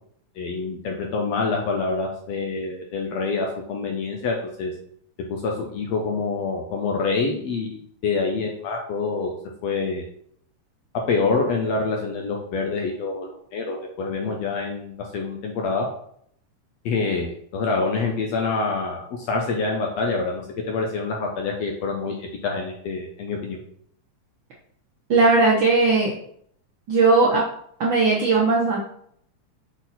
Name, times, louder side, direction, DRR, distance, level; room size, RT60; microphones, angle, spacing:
voice 1, 0.4-4.7 5.3-9.4 9.6-10.0 10.9-15.9 16.9-23.6, left 4 dB, 70° left, 0 dB, 1.7 m, -26 dB
voice 2, 25.1-26.1 26.9-27.4 27.8-28.8, right 3 dB, 90° right, -3 dB, 1.0 m, -18 dB
6.2 x 4.1 x 4.1 m, 0.66 s
omnidirectional pair, 3.6 m